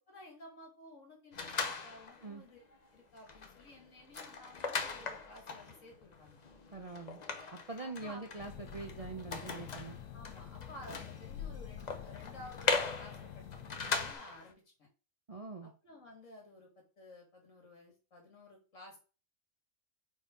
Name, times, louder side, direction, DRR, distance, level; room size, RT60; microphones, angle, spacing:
voice 1, 0.0-2.6 2.9-6.4 7.8-8.2 10.1-14.9 15.6-19.0, left 1 dB, 70° left, 1 dB, 2.6 m, -54 dB
sound 1, 1.3-2.3 2.7-2.9 3.2-14.5, left 4 dB, 40° left, 0.7 m, -39 dB
voice 2, 6.7-7.2 7.5-10.0 15.3-15.7, right 3 dB, 35° right, 3 dB, 0.7 m, -44 dB
sound 2, 8.4-14.2, left 9 dB, 85° left, 1.2 m, -47 dB
4.7 x 4.3 x 5.1 m, 0.34 s
omnidirectional pair, 1.4 m